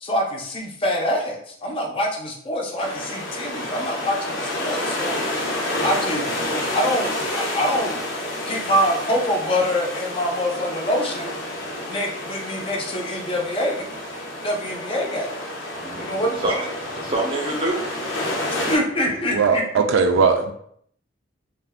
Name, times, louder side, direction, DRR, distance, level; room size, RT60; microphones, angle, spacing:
voice 1, 0.0-5.2 5.8-6.3 6.7-8.0 8.5-11.3 11.9-13.8 14.4-15.3 16.0-16.4 18.7-19.8, equal, 25° left, 0 dB, 0.5 m, -25 dB
sound 1, 2.8-18.8, left 1 dB, 80° left, 0.6 m, -29 dB
voice 2, 15.8-18.6 19.1-19.2, right 2 dB, 25° right, 0 dB, 0.5 m, -28 dB
voice 3, 19.3-20.5, right 5 dB, 80° right, 6 dB, 0.4 m, -18 dB
2.4 x 2.2 x 3.4 m, 0.67 s
head